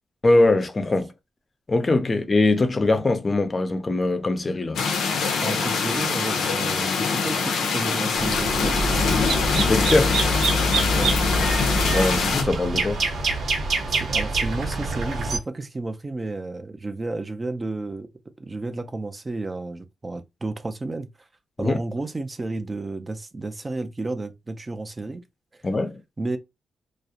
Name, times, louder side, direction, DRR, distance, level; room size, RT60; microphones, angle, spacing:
voice 1, 0.2-1.1 1.7-4.8 9.6-10.2 11.8-13.0 21.6-21.8 25.6-26.0, left 2 dB, 30° left, 0.5 m, -22 dB
sound 1, 4.8-12.4, left 5 dB, 85° left, 0.5 m, -24 dB
voice 2, 5.4-8.9 10.9-11.2 13.9-18.1 18.4-21.1 21.6-25.2 26.2-26.4, right 2 dB, 25° right, 0.4 m, -32 dB
sound 2, 8.2-15.4, right 2 dB, 75° right, 0.9 m, -25 dB
2.3 x 2.0 x 2.7 m
cardioid pair, 100°, 0 cm